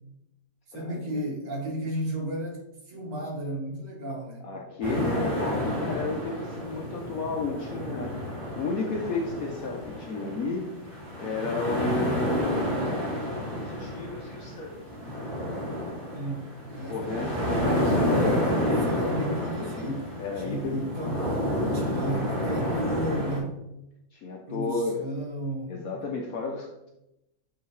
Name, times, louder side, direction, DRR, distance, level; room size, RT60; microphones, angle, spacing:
voice 1, 0.7-4.5 16.1-17.3 18.1-21.3 21.7-23.6 24.5-25.9, right 1 dB, 55° right, -1 dB, 1.7 m, -33 dB
voice 2, 4.4-10.7 11.2-12.9 13.6-14.7 16.9-18.8 20.2-21.1 22.1-22.3 24.1-25.0 25.7-26.9, left 3 dB, 65° left, 0 dB, 0.9 m, -32 dB
sound 1, 4.8-23.4, equal, 30° right, 1.8 m, -30 dB
8.1 x 3.7 x 3.2 m, 0.89 s
omnidirectional pair, 1.9 m